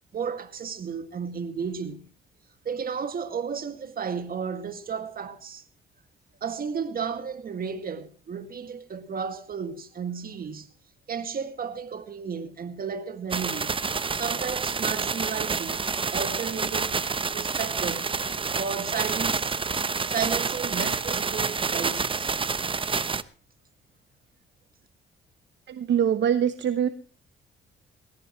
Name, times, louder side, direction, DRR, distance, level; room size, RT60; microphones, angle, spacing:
voice 1, 0.1-2.0 2.6-5.6 6.4-10.7 11.1-13.7 14.1-15.8 16.1-17.0 17.3-18.1 18.5-19.5 20.1-22.4, right 6 dB, 50° right, 2.2 m, -33 dB
sound 1, 13.3-23.2, right 5 dB, 25° right, 0.8 m, -28 dB
voice 2, 25.7-26.9, right 9 dB, 65° right, 1.0 m, -23 dB
20.5 x 18.0 x 3.2 m
cardioid pair, 90°, 20 cm